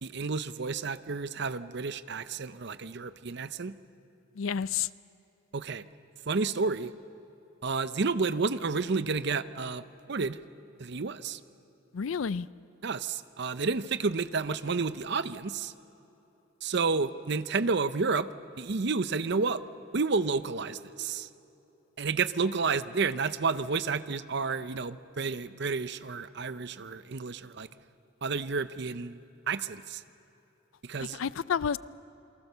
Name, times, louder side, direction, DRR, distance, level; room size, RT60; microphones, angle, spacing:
voice 1, 0.0-3.7 5.5-5.8 6.3-6.9 7.6-10.4 10.8-11.4 12.8-15.7 16.6-18.3 18.6-19.6 19.9-21.3 22.0-27.7 28.2-30.0 30.8-31.2, right 4 dB, 55° right, 13 dB, 0.7 m, -30 dB
voice 2, 4.4-4.9 11.9-12.5 31.0-31.8, left 7 dB, 80° left, 18 dB, 0.5 m, -30 dB
28.0 x 23.0 x 6.8 m, 3.0 s
head